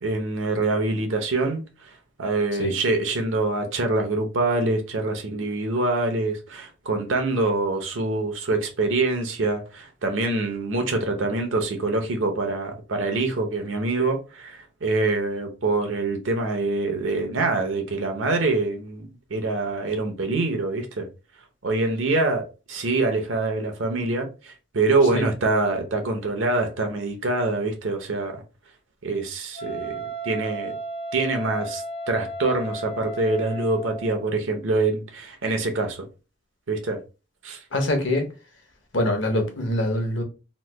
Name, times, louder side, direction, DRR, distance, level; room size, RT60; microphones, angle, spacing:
voice 1, 0.0-1.9 2.2-21.1 21.6-28.4 29.0-30.8 31.1-36.1 36.7-37.0 37.4-37.6, right 3 dB, 85° right, 0.8 m, -25 dB
Wind instrument woodwind instrument, 29.5-34.2, right 2 dB, 30° left, 0.5 m, -34 dB
voice 2, 37.7-38.3 38.9-40.2, left 1 dB, 70° left, 0.9 m, -24 dB
3.1 x 2.2 x 3.2 m
head